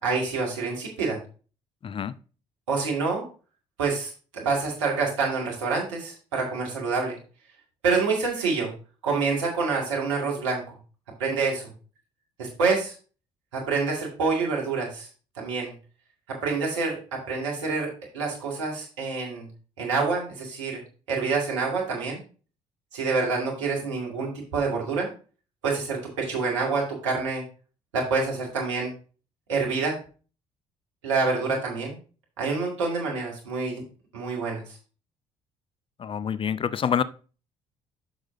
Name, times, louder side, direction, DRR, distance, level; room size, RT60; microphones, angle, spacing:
voice 1, 0.0-1.2 2.7-3.2 3.8-7.2 7.8-8.7 9.0-10.6 11.2-11.7 12.4-12.9 13.5-15.1 15.4-15.7 16.3-19.5 19.8-20.8 21.1-22.2 22.9-25.1 25.6-27.4 27.9-28.9 29.5-30.0 31.0-32.0 32.4-33.8 34.1-34.6, right 4 dB, 85° right, -1 dB, 2.1 m, -27 dB
voice 2, 36.0-37.0, left 8 dB, 35° left, 17 dB, 0.5 m, -26 dB
8.8 x 6.2 x 2.7 m, 0.36 s
hypercardioid pair, 50°, 15 cm